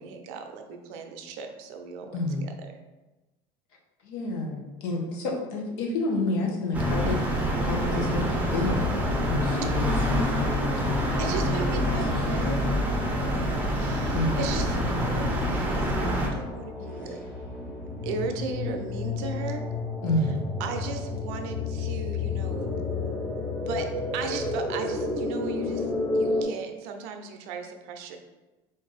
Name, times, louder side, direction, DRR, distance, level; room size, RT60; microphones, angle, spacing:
voice 1, 0.0-2.7 11.2-17.2 18.0-19.7 20.2-20.3 20.6-22.7 23.7-28.2, right 5 dB, 75° right, 5 dB, 0.5 m, -37 dB
voice 2, 4.0-8.3 8.5-8.8 9.3-12.8 14.1-14.4 20.0-20.4, left 2 dB, 80° left, -1 dB, 1.0 m, -30 dB
sound 1, 6.7-16.3, equal, 15° right, 0.6 m, -26 dB
sound 2, 8.3-26.4, left 3 dB, 15° left, 1.4 m, -32 dB
3.9 x 2.6 x 4.0 m, 1.1 s
cardioid pair, 140°, 12 cm